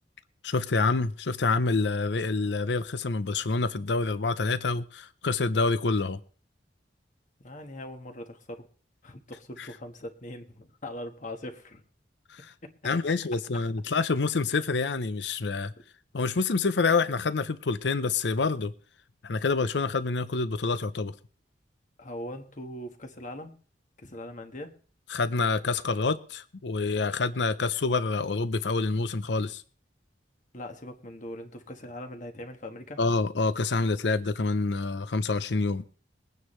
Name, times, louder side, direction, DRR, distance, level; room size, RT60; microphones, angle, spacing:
voice 1, 0.4-6.2 9.6-9.7 12.3-12.5 12.8-15.7 16.1-18.7 19.2-21.1 25.1-29.6 33.0-35.8, left 3 dB, 70° left, 0.7 m, -27 dB
voice 2, 7.4-8.7 9.0-11.8 12.6-12.7 22.0-23.5 24.0-24.8 30.5-33.0, left 1 dB, 45° left, 1.4 m, -41 dB
22.0 x 9.4 x 3.2 m
head